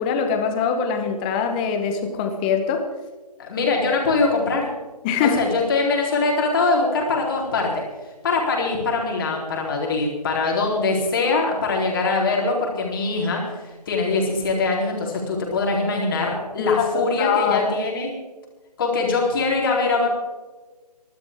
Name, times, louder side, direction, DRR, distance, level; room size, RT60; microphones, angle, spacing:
voice 1, 0.0-2.8 5.0-5.4 16.6-16.7 16.9-17.7, left 6 dB, 15° left, 6 dB, 1.1 m, -23 dB
voice 2, 3.4-4.7 5.2-7.8 8.2-13.4 13.9-18.1 18.8-20.1, left 3 dB, 30° left, -1 dB, 4.0 m, -22 dB
27.0 x 12.0 x 3.7 m, 1.2 s
figure-of-eight pair, 155°, 21 cm